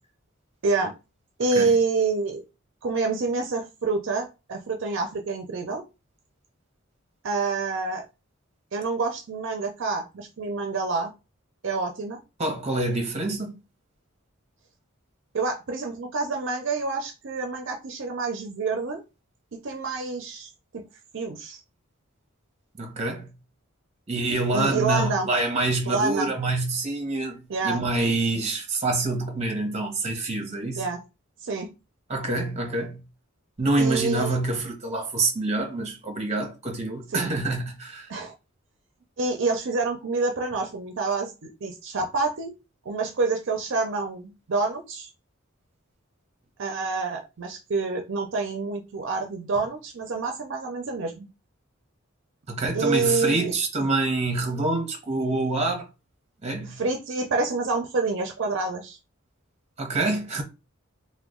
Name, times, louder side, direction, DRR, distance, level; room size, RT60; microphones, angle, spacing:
voice 1, 1.4-2.4 2.8-5.8 7.2-8.0 8.7-11.1 11.6-12.2 15.3-19.0 19.5-20.5 20.7-20.8 21.1-21.6 24.5-25.3 25.9-26.3 27.5-27.8 30.8-31.0 31.4-31.7 33.8-34.3 37.1-37.3 38.1-38.3 39.2-42.5 42.9-45.1 46.6-51.3 52.7-53.5 56.8-59.0, right 3 dB, 65° right, 0.5 m, -27 dB
voice 2, 12.4-13.5 22.8-23.3 24.1-30.9 32.1-33.0 33.6-38.1 52.5-55.9 56.4-56.8 59.8-60.4, right 2 dB, 30° right, 0.9 m, -26 dB
2.9 x 2.1 x 3.6 m
head